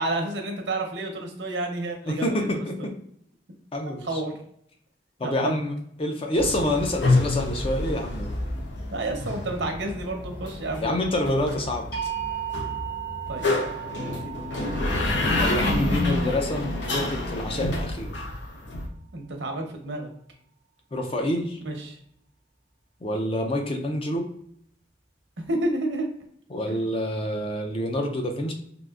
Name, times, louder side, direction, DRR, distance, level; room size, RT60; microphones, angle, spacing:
voice 1, 0.0-2.5 2.8-2.9 4.0-4.3 5.2-5.5 8.9-11.0 13.3-13.5 14.2-14.9 19.1-20.1 21.6-22.0 25.5-26.1, right 2 dB, 80° right, 3 dB, 0.8 m, -30 dB
voice 2, 2.1-2.9 3.7-4.2 5.2-8.3 10.8-11.9 15.4-18.2 20.9-21.6 23.0-24.3 26.5-28.5, left 1 dB, 30° left, 3 dB, 0.4 m, -27 dB
sound 1, 6.4-18.9, left 2 dB, 80° left, 0.6 m, -28 dB
sound 2, 11.9-17.9, right 10 dB, 55° left, 1.5 m, -36 dB
3.6 x 2.5 x 2.4 m, 0.69 s
head